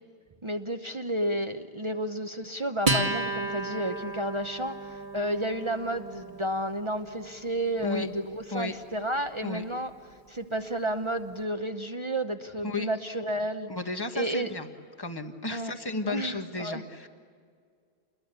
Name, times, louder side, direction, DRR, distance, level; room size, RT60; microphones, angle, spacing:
voice 1, 0.4-9.9 10.3-13.7 14.1-14.5 15.5-15.7 16.1-16.8, right 1 dB, 30° right, 6 dB, 0.9 m, -31 dB
Acoustic guitar, 2.9-9.7, right 2 dB, 50° right, 1.7 m, -34 dB
voice 2, 13.7-14.7 15.0-17.1, left 3 dB, 20° left, 5 dB, 1.6 m, -33 dB
29.0 x 21.5 x 8.2 m, 2.1 s
omnidirectional pair, 1.1 m